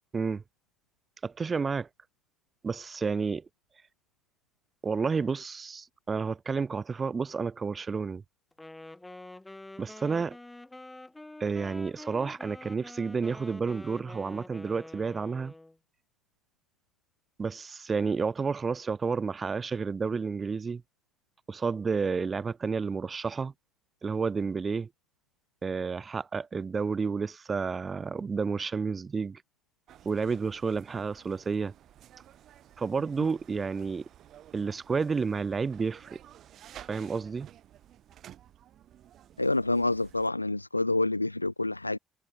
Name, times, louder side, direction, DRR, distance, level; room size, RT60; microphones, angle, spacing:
voice 1, 1.2-1.9 2.6-3.4 4.8-8.2 9.8-10.4 11.4-15.5 17.4-20.8 21.5-23.5 24.0-24.9 25.6-29.4 30.0-31.7 32.8-34.0 34.5-36.2 36.9-37.5, right 5 dB, 35° right, 0.8 m, -30 dB
Wind instrument woodwind instrument, 8.5-15.8, left 2 dB, 15° left, 4.4 m, -47 dB
sound 1, 29.9-40.3, right 11 dB, 60° right, 5.1 m, -53 dB
voice 2, 39.4-42.0, left 2 dB, 90° left, 0.3 m, -27 dB
figure-of-eight pair, 40°, 0 cm